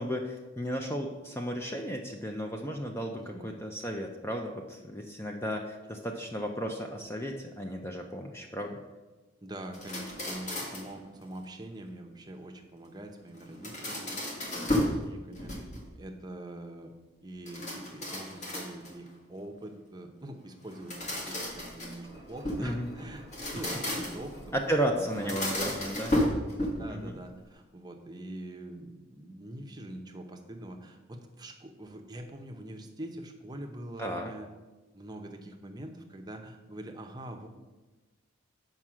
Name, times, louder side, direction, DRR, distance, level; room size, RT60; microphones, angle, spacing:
voice 1, 0.0-8.8 22.6-22.9 24.5-26.1 26.9-27.2 34.0-34.3, equal, 10° left, 2 dB, 0.5 m, -34 dB
voice 2, 3.1-3.5 9.4-15.5 16.0-16.9 17.2-23.3 23.5-24.6 25.0-25.6 26.4-34.5 34.9-37.5, right 1 dB, 20° right, 4 dB, 0.7 m, -44 dB
sound 1, 9.7-11.0 13.4-15.0 15.4-16.0 17.4-19.1 20.7-22.7 23.2-24.3 25.1-27.0, left 1 dB, 35° left, 1.5 m, -33 dB
Engine, 22.0-27.5, right 1 dB, 50° left, 2.0 m, -51 dB
7.3 x 5.4 x 6.1 m, 1.2 s
head